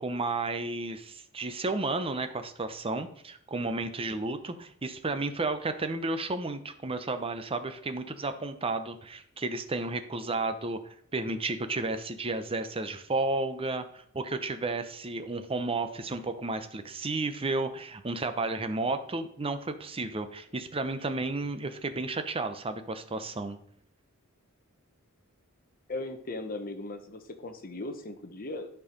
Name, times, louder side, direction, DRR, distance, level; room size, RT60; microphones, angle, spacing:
voice 1, 0.0-23.6, right 3 dB, 25° right, 9 dB, 0.8 m, -32 dB
voice 2, 25.9-28.7, left 2 dB, 40° left, 6 dB, 1.0 m, -38 dB
11.5 x 4.7 x 5.2 m, 0.65 s
head